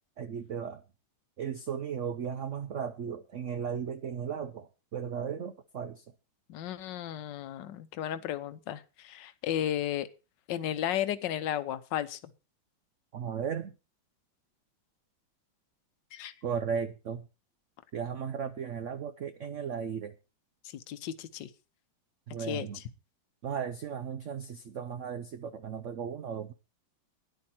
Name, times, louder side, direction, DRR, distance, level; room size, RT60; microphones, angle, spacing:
voice 1, 0.2-0.8 1.4-6.0 13.1-13.7 16.4-17.3 17.9-20.1 22.3-22.8 23.4-26.5, right 7 dB, 65° right, 10 dB, 0.7 m, -36 dB
voice 2, 6.5-10.1 10.5-12.2 16.1-16.3 20.6-21.5 22.4-22.8, left 11 dB, 65° left, 12 dB, 1.5 m, -34 dB
13.0 x 10.5 x 4.3 m, 0.31 s
omnidirectional pair, 2.2 m